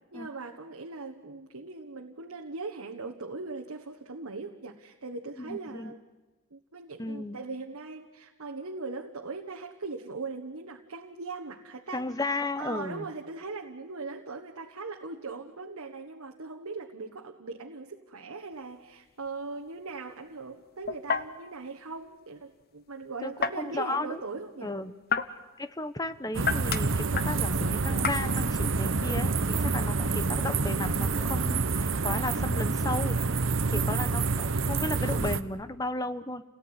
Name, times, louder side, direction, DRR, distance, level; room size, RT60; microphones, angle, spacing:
voice 1, 0.1-6.0 6.5-12.1 12.6-24.7 29.5-29.8, right 3 dB, 85° right, 3 dB, 1.4 m, -40 dB
voice 2, 5.5-5.9 7.0-7.4 11.9-13.1 23.2-24.2 24.6-24.9 25.6-33.2 33.7-36.4, left 2 dB, 15° left, 12 dB, 0.9 m, -34 dB
sound 1, 18.5-31.5, left 6 dB, 45° left, 1.0 m, -37 dB
sound 2, 26.3-35.4, right 4 dB, 60° right, 0.9 m, -27 dB
29.0 x 18.0 x 9.7 m, 1.2 s
head